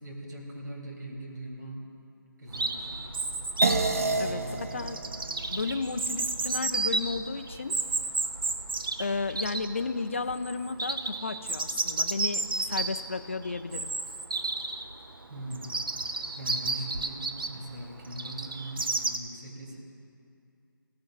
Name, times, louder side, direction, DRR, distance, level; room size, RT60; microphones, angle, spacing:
voice 1, 0.0-1.9 2.4-3.1 4.0-4.6 15.3-15.7 16.0-19.8, right 1 dB, 60° right, -2 dB, 3.0 m, -41 dB
Chirp tweet, 2.5-19.2, right 3 dB, 75° right, 0.9 m, -32 dB
sound 1, 3.6-8.3, right 3 dB, 40° right, 0.5 m, -32 dB
voice 2, 4.2-5.0 5.5-7.8 9.0-13.9, left 4 dB, 35° left, 9 dB, 0.4 m, -33 dB
17.0 x 14.0 x 2.4 m, 2.5 s
hypercardioid pair, 175°, 12 cm